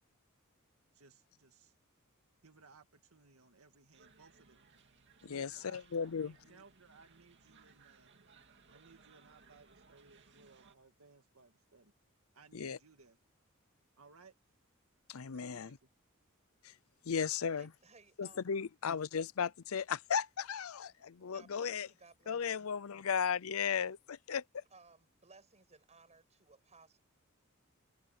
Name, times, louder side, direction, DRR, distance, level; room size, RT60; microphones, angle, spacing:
voice 1, 0.9-1.7 2.4-4.6 5.2-8.1 8.7-11.9 12.3-13.2 14.0-14.3 15.3-15.9, right 4 dB, 85° right, 2.0 m, -62 dB
sound 1, 3.9-10.7, right 4 dB, 55° right, 2.4 m, -64 dB
voice 2, 5.2-6.3 12.5-12.8 15.1-15.7 16.6-16.7 17.1-17.7 18.2-21.9 22.3-24.6, left 7 dB, 75° left, 0.6 m, -36 dB
voice 3, 17.5-18.5 18.8-19.0 21.3-22.7 24.7-27.0, right 3 dB, 30° right, 7.8 m, -61 dB
head